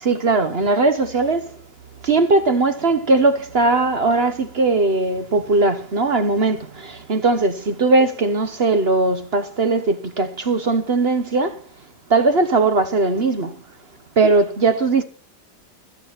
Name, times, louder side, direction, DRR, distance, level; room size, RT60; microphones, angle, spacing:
voice 1, 0.0-1.5 2.0-11.6 12.1-13.6 14.2-15.0, right 3 dB, 40° right, 1.1 m, -19 dB
12.5 x 9.7 x 5.8 m
omnidirectional pair, 1.9 m